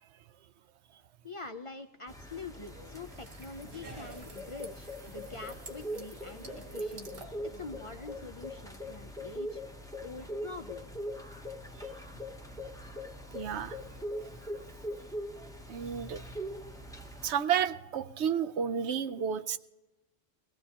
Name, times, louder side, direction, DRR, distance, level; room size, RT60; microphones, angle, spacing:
voice 1, 1.2-9.6 10.0-10.9, left 4 dB, 45° left, 6 dB, 0.4 m, -45 dB
sound 1, 2.1-17.3, equal, 5° left, 0.7 m, -42 dB
sound 2, 2.5-8.2, right 3 dB, 70° right, 1.8 m, -50 dB
voice 2, 13.3-13.8 15.4-16.2 17.2-19.6, right 8 dB, 90° right, 12 dB, 0.9 m, -31 dB
21.5 x 16.5 x 2.9 m, 1.0 s
omnidirectional pair, 1.1 m